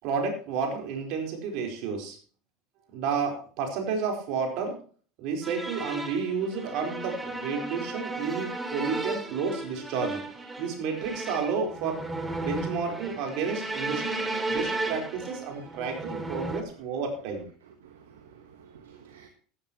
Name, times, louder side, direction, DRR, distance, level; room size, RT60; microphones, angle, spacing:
voice 1, 0.0-2.2 2.9-4.7 5.2-10.2 10.6-12.1 12.4-17.5, right 5 dB, 60° right, 2 dB, 4.4 m, -31 dB
sound 1, 5.4-16.6, right 2 dB, 15° right, 2.3 m, -34 dB
voice 2, 17.8-19.3, right 8 dB, 80° right, 6 dB, 1.4 m, -52 dB
14.0 x 12.0 x 3.1 m, 0.41 s
hypercardioid pair, 85°, 0 cm